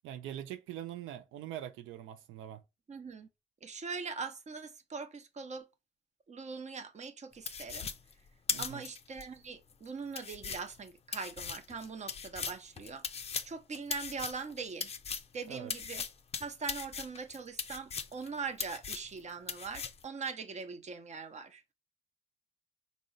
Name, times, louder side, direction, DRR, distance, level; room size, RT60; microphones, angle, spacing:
voice 1, 0.0-2.6 8.5-8.8 15.5-15.7, right 11 dB, 85° right, 0.4 m, -43 dB
voice 2, 2.9-3.3 3.6-5.7 6.3-7.9 8.6-14.9 15.3-16.0 16.4-21.6, right 5 dB, 35° right, 0.7 m, -42 dB
sound 1, 7.5-9.2 9.7-9.8 10.1-15.3 15.7-18.3 18.6-19.2 19.5-20.0, left 6 dB, 30° left, 0.4 m, -39 dB
3.6 x 2.1 x 3.8 m
cardioid pair, 90°, 20 cm